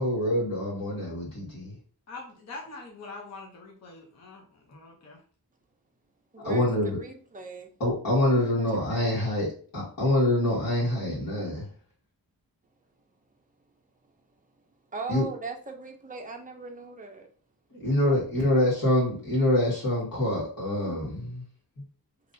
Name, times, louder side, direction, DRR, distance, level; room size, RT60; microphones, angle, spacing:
voice 1, 0.0-1.7 6.4-7.0 7.8-9.5 9.7-11.7 15.1-15.2 17.7-21.4 21.8-21.9, left 1 dB, 65° left, -7 dB, 1.7 m, -25 dB
voice 2, 2.1-5.2, left 3 dB, 45° left, 0 dB, 0.7 m, -44 dB
voice 3, 6.3-7.7 8.2-9.2 14.9-17.3, right 3 dB, 20° right, 3 dB, 0.5 m, -40 dB
3.8 x 2.9 x 2.6 m, 0.43 s
wide cardioid pair, 170°, 38 cm